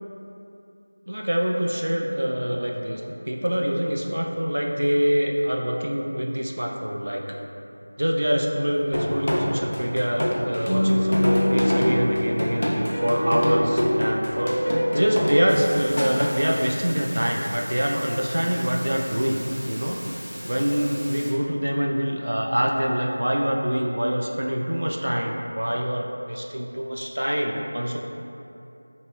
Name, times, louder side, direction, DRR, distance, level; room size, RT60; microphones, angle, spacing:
voice 1, 1.1-7.2 8.0-14.6 14.9-20.0 20.4-28.0, equal, 70° right, 0 dB, 0.3 m, -25 dB
sound 1, 8.9-16.3, equal, 70° left, 0.4 m, -26 dB
sound 2, 10.6-15.9, equal, 10° left, 0.6 m, -24 dB
sound 3, 15.5-21.3, equal, 25° right, 0.8 m, -39 dB
3.9 x 2.7 x 2.3 m, 2.7 s
figure-of-eight pair, 180°, 0 cm